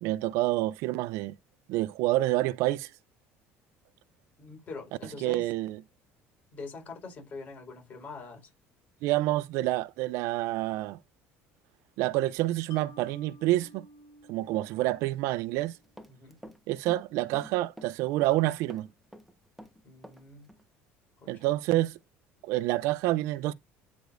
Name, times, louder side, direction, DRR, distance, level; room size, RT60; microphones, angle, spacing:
voice 1, 0.0-1.3 1.7-2.9 5.2-5.8 9.0-11.0 12.0-13.9 14.3-15.7 16.7-18.9 21.3-22.0 22.4-23.5, right 17 dB, 75° right, 0.4 m, -28 dB
voice 2, 4.4-5.5 6.5-8.5 16.1-16.3 19.8-20.5 21.2-21.5, left 4 dB, 35° left, 4.3 m, -44 dB
Mallet percussion, 12.7-16.0, equal, 60° left, 1.2 m, -53 dB
Run, 15.5-16.6 16.9-18.4 18.7-20.2 20.5-20.6, equal, ahead, 1.1 m, -48 dB
9.1 x 5.0 x 2.5 m
cardioid pair, 135°, 5 cm